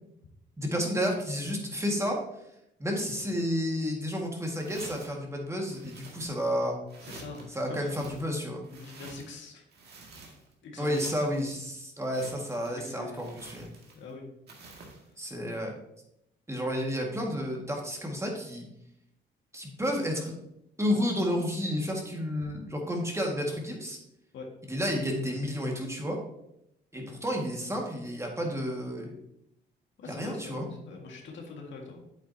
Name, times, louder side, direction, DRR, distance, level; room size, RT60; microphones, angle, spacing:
voice 1, 0.6-2.2 2.8-6.8 7.5-8.7 10.8-13.7 15.2-15.8 16.5-18.6 19.5-20.3 20.8-24.0 24.6-26.2 26.9-29.1 30.1-30.7, equal, 15° right, 0 dB, 1.8 m, -31 dB
sound 1, 4.5-5.2 5.7-6.6 6.9-7.5 7.8-9.4 9.7-10.5 10.8-11.5 12.0-12.8 13.1-14.1 14.5-15.1, right 3 dB, 55° right, 2.0 m, -49 dB
voice 2, 7.0-8.0 8.7-9.7 10.6-11.3 12.7-13.3 13.9-14.3 22.4-22.5 24.3-24.5 30.0-32.0, left 3 dB, 70° left, 1 dB, 1.8 m, -43 dB
8.2 x 7.7 x 2.8 m, 0.82 s
cardioid pair, 90°, 20 cm